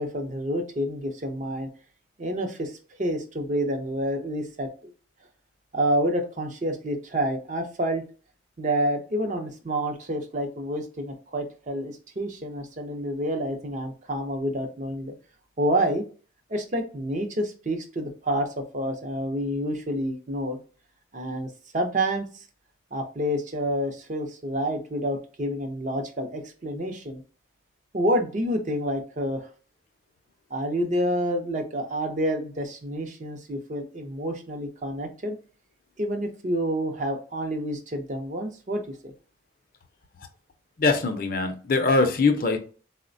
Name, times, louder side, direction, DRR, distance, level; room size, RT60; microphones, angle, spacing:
voice 1, 0.0-1.7 2.2-4.9 5.7-8.0 8.6-15.1 15.6-16.0 16.5-18.5 18.7-20.6 21.1-22.4 22.9-27.2 27.9-29.5 30.5-35.4 36.0-39.1, equal, 40° right, 4 dB, 0.5 m, -28 dB
voice 2, 40.8-42.6, left 3 dB, 50° left, 6 dB, 0.5 m, -22 dB
3.9 x 2.1 x 2.5 m, 0.38 s
head